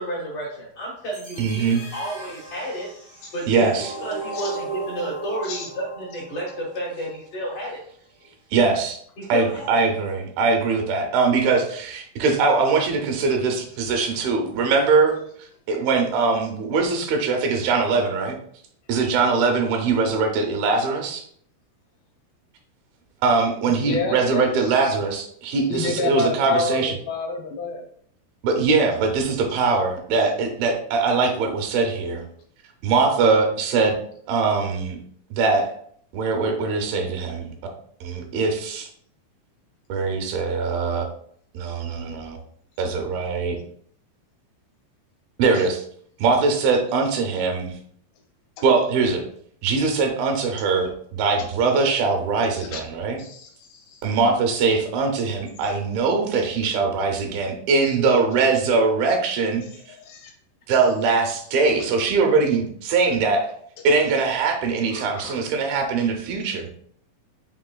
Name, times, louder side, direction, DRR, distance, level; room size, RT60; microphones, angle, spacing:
voice 1, 0.0-2.9 3.3-3.7 4.0-7.8 9.2-9.8, right 1 dB, 60° left, -6 dB, 1.6 m, -31 dB
sound 1, 1.1-7.1, right 3 dB, 40° right, 0.4 m, -36 dB
voice 2, 1.4-1.8 3.5-3.9 8.5-9.0 9.3-15.2 15.7-18.4 18.9-21.2 23.2-27.0 28.4-32.2 32.8-34.0 34.3-35.0 35.3-35.7 36.1-37.5 38.0-38.9 39.9-41.0 41.5-42.4 42.8-43.6 45.4-45.8 46.2-47.7 48.6-49.3 49.6-53.2 54.0-59.6 60.7-63.5 63.8-66.7, right 4 dB, 90° right, 4 dB, 2.6 m, -22 dB
voice 3, 23.8-24.5 25.7-27.8 45.5-45.6 52.5-52.8 53.2-54.1 59.6-59.7 60.0-60.3 61.8-61.9 64.9-65.5, left 5 dB, 80° left, 2 dB, 2.3 m, -29 dB
5.7 x 3.7 x 2.2 m, 0.62 s
omnidirectional pair, 4.1 m